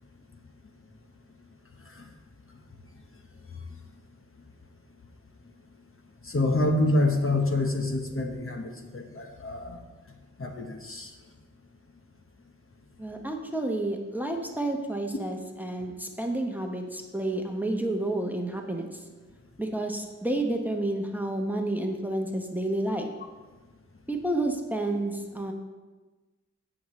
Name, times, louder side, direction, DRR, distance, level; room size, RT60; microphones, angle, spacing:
voice 1, 6.2-9.8 10.4-11.1, left 2 dB, 45° left, 3 dB, 1.1 m, -27 dB
voice 2, 13.0-19.0 19.6-23.1 24.1-25.5, right 1 dB, 5° right, 2 dB, 1.1 m, -30 dB
16.5 x 6.3 x 3.2 m, 1.3 s
wide cardioid pair, 65°, 30 cm